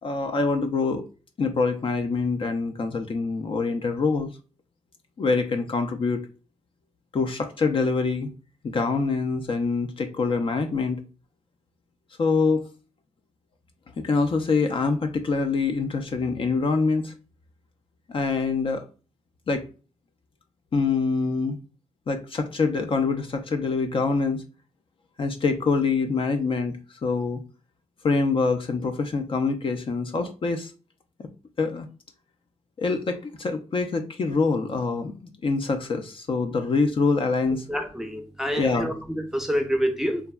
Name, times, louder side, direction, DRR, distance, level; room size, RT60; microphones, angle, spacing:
voice 1, 0.0-1.0 1.4-4.3 5.2-6.2 7.1-8.3 8.6-11.0 12.2-12.7 14.0-17.1 18.1-18.8 19.5-19.7 20.7-21.6 22.1-24.4 25.2-26.7 27.0-27.4 28.0-30.7 31.2-31.3 31.6-31.9 32.8-35.1 35.4-37.6 38.5-38.9, left 4 dB, 45° left, 0.4 m, -25 dB
voice 2, 37.7-40.2, equal, 5° right, 0.5 m, -27 dB
3.3 x 2.0 x 2.3 m
cardioid pair, 80°, 12 cm